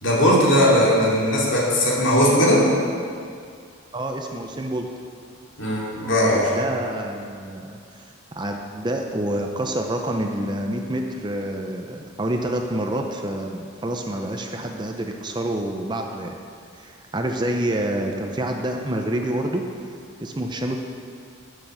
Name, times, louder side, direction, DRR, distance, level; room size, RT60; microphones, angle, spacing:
voice 1, 0.0-2.7 5.6-6.5, equal, 60° left, -5 dB, 2.8 m, -18 dB
voice 2, 3.9-4.9 6.3-7.8 8.4-16.4 16.7-19.7 20.2-20.8, right 1 dB, 20° right, 3 dB, 0.6 m, -27 dB
11.0 x 7.1 x 6.8 m, 2.2 s
head